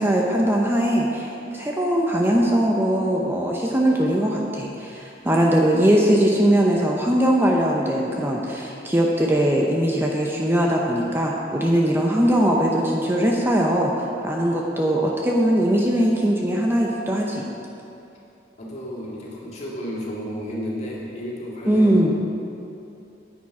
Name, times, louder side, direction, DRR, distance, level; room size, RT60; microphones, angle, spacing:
voice 1, 0.0-17.4 21.7-22.1, right 1 dB, 10° right, -2 dB, 0.7 m, -20 dB
voice 2, 18.6-22.1, equal, 35° left, -5 dB, 2.1 m, -32 dB
9.8 x 8.8 x 4.8 m, 2.8 s
head